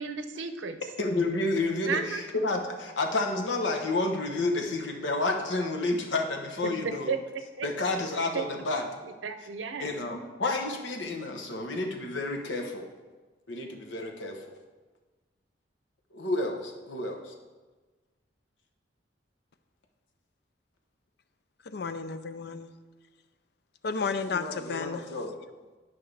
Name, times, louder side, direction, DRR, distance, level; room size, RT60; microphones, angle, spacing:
voice 1, 0.0-0.8 1.9-2.2 6.6-7.7 8.3-8.4 9.0-9.9, right 5 dB, 85° right, 8 dB, 0.6 m, -33 dB
voice 2, 1.0-7.1 7.6-8.9 9.8-12.9 13.5-14.5 16.1-17.3 24.3-25.4, left 2 dB, 80° left, 2 dB, 1.1 m, -30 dB
voice 3, 21.7-22.7 23.8-25.0, left 4 dB, 60° left, 11 dB, 0.5 m, -32 dB
11.0 x 5.6 x 3.4 m, 1.3 s
head